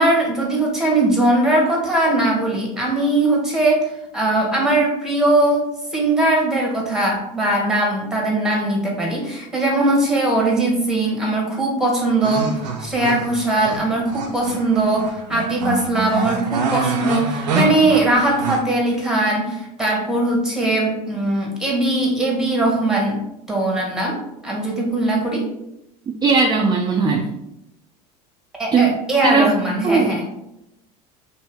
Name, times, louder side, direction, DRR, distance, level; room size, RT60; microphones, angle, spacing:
voice 1, 0.0-5.7 5.9-23.2 23.5-25.5 28.6-30.2, right 2 dB, ahead, -1 dB, 1.1 m, -20 dB
sound 1, 12.2-18.6, right 4 dB, 85° right, 0.5 m, -25 dB
voice 2, 26.2-27.3 28.7-28.9 29.2-29.5 29.8-30.1, right 4 dB, 20° right, 1 dB, 0.4 m, -17 dB
2.7 x 2.6 x 3.4 m, 0.85 s
hypercardioid pair, 85°, 21 cm